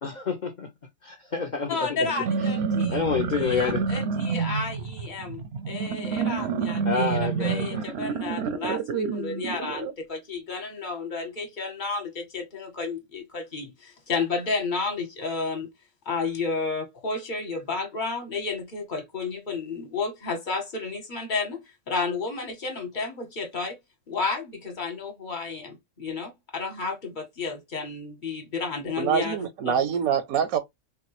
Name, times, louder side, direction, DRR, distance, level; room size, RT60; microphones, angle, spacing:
voice 1, 0.0-0.7 1.0-2.1 2.9-3.8 6.9-7.9, left 5 dB, 55° left, 0.5 m, -28 dB
voice 2, 1.7-3.0 3.3-15.7 16.1-23.8 24.1-29.5, left 4 dB, 40° left, 1.0 m, -32 dB
sound 1, 2.1-9.9, right 6 dB, 65° right, 0.7 m, -28 dB
voice 3, 29.0-30.6, right 8 dB, 90° right, 1.1 m, -25 dB
3.7 x 2.2 x 3.0 m
omnidirectional pair, 1.5 m